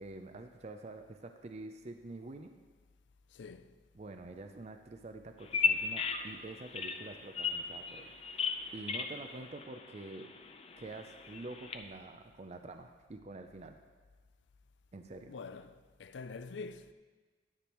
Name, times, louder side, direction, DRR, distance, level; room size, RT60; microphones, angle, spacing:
voice 1, 0.0-2.5 3.9-10.3 10.8-13.8 14.9-15.3, right 2 dB, 35° right, 0.5 m, -47 dB
voice 2, 3.3-3.7 15.3-16.9, left 4 dB, 80° left, 0.4 m, -46 dB
Bird vocalization bird call bird song, 5.4-11.8, left 5 dB, 35° left, 0.6 m, -37 dB
10.0 x 9.5 x 3.0 m
head